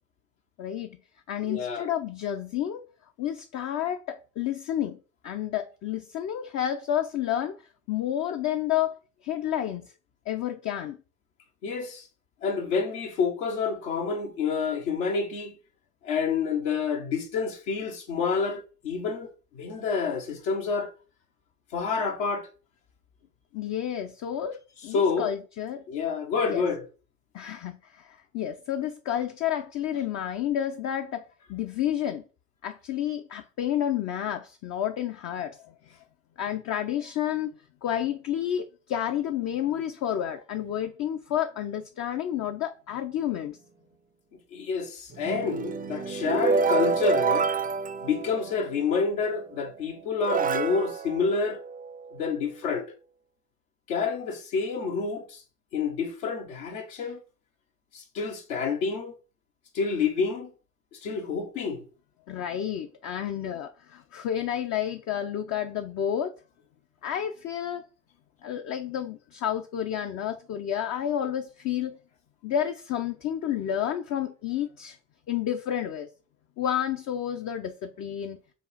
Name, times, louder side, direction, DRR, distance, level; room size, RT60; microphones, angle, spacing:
voice 1, 0.6-1.0 1.3-2.8 3.2-7.6 7.9-9.9 10.3-11.0 23.5-25.8 26.4-26.7 27.3-31.2 31.5-32.2 32.6-35.7 36.4-37.5 37.8-43.6 62.3-66.4 67.0-67.9 68.4-72.0 72.4-75.0 75.3-76.1 76.6-78.4, left 10 dB, 40° left, 0.5 m, -30 dB
voice 2, 1.5-1.9 11.6-12.1 12.4-15.6 16.0-20.9 21.7-22.5 24.9-25.3 25.9-26.8 44.5-47.5 48.0-51.6 52.1-52.9 53.9-55.4 55.7-57.2 57.9-59.1 59.7-60.5 60.9-61.8, left 5 dB, 75° left, 1.2 m, -28 dB
sound 1, 45.1-48.9 49.7-49.8 50.2-52.1, right 5 dB, 20° right, 0.4 m, -28 dB
5.3 x 2.4 x 4.0 m
figure-of-eight pair, 55°, 42 cm